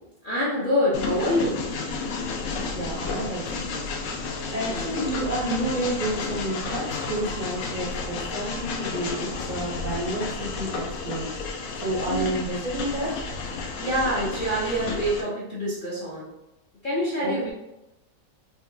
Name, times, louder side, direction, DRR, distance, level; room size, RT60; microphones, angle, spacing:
voice 1, 0.2-1.6 4.6-5.2 12.0-12.4 13.8-16.3 16.8-17.5, equal, 50° left, -7 dB, 0.6 m, -26 dB
Train, 0.9-15.2, left 4 dB, 70° left, 0.9 m, -32 dB
voice 2, 2.7-3.8 4.5-10.7 11.0-11.3 11.8-13.2 17.2-17.5, right 1 dB, 50° right, -7 dB, 0.5 m, -30 dB
3.7 x 2.2 x 2.6 m, 0.95 s
omnidirectional pair, 1.6 m